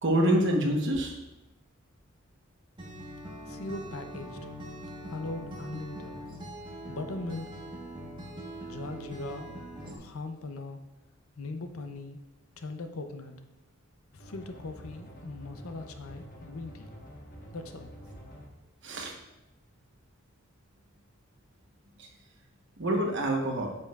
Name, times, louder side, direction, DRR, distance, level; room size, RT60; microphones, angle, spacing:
voice 1, 0.0-1.2 18.8-19.1 22.8-23.7, right 1 dB, 55° right, 1 dB, 1.2 m, -26 dB
Acoustic guitar, 2.8-10.0, equal, 20° right, 1.3 m, -42 dB
voice 2, 3.5-4.4 5.1-6.2 6.9-7.5 8.6-9.6 10.0-10.8 11.4-12.2 12.6-13.3 14.1-16.9 17.5-17.9, left 2 dB, 90° left, 7 dB, 0.7 m, -39 dB
sound 1, 14.2-18.4, equal, 45° left, 1.4 m, -48 dB
8.5 x 6.8 x 2.5 m, 0.98 s
head